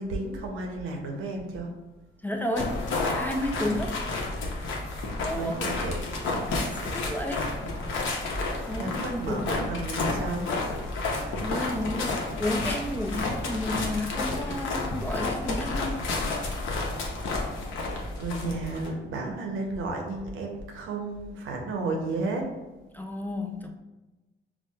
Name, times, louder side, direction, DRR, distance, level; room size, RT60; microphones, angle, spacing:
voice 1, 0.0-1.7 5.3-6.1 8.8-10.5 18.1-22.5, right 2 dB, 85° right, 2 dB, 0.7 m, -32 dB
voice 2, 2.2-4.0 5.2-5.7 6.5-7.5 8.4-9.6 11.4-16.0 22.9-23.7, left 1 dB, 10° left, 2 dB, 0.3 m, -32 dB
sound 1, 2.6-18.9, left 2 dB, 75° left, 0.7 m, -31 dB
4.4 x 2.1 x 2.3 m, 1.1 s
cardioid pair, 90°, 20 cm